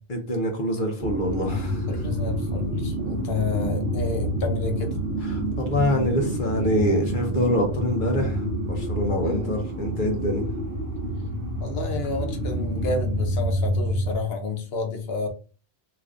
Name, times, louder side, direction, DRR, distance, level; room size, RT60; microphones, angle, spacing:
voice 1, 0.1-1.9 5.2-10.4, equal, 55° left, 2 dB, 1.0 m, -25 dB
sound 1, 1.0-14.2, equal, 55° right, 1.3 m, -28 dB
voice 2, 1.9-5.0 9.2-9.5 11.6-15.3, left 4 dB, 70° left, 4 dB, 1.0 m, -30 dB
3.3 x 3.0 x 2.5 m, 0.37 s
omnidirectional pair, 1.1 m